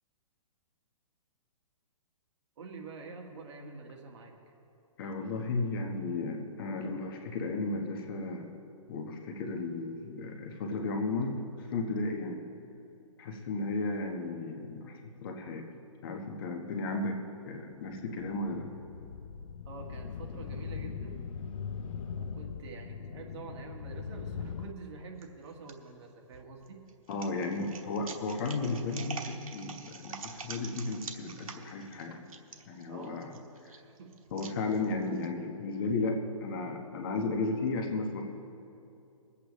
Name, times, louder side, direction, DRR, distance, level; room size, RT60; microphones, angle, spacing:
voice 1, 2.6-4.3 19.7-21.2 22.2-26.8 32.9-33.2 33.7-34.2, right 4 dB, 55° right, 1 dB, 1.7 m, -47 dB
voice 2, 5.0-8.5 8.9-12.4 13.2-15.7 16.0-17.2 17.4-18.7 27.1-32.2 32.7-33.3 33.6-33.7 34.3-38.2, left 3 dB, 40° left, 3 dB, 1.3 m, -34 dB
sound 1, 17.9-24.7, left 6 dB, 70° left, 0.7 m, -40 dB
sound 2, 25.2-25.7 26.3-35.3, right 5 dB, 85° right, 1.2 m, -45 dB
23.5 x 8.4 x 3.2 m, 2.7 s
hypercardioid pair, 155°, 18 cm